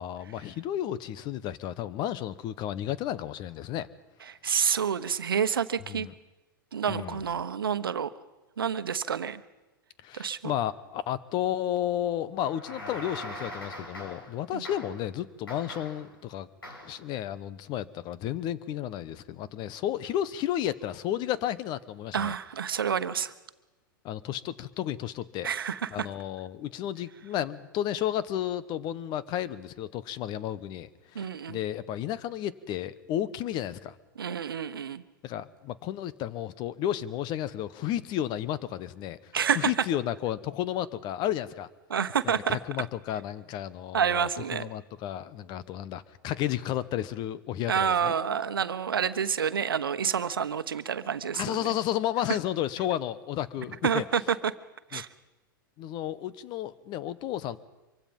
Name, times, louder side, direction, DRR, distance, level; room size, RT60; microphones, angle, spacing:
voice 1, 0.0-3.9 5.9-6.1 6.9-7.2 10.0-16.5 16.8-22.3 24.0-25.5 25.9-33.9 35.2-39.2 39.5-41.7 42.5-48.1 51.3-54.0 54.9-55.0 55.8-57.6, left 11 dB, 40° left, 16 dB, 1.1 m, -32 dB
voice 2, 4.3-6.1 6.7-8.1 8.6-9.4 10.1-10.5 14.5-14.6 22.1-23.3 25.4-26.1 31.1-31.6 34.2-35.0 39.3-39.7 41.9-42.6 43.9-44.7 47.7-51.7 53.8-54.5 54.9-55.1, right 7 dB, 80° right, 12 dB, 1.1 m, -28 dB
sound 1, 12.4-14.4 14.6-15.1 15.5-16.1 16.6-17.0, left 1 dB, 85° left, 6.6 m, -41 dB
25.0 x 24.0 x 5.4 m, 1.1 s
hypercardioid pair, 105°, 12 cm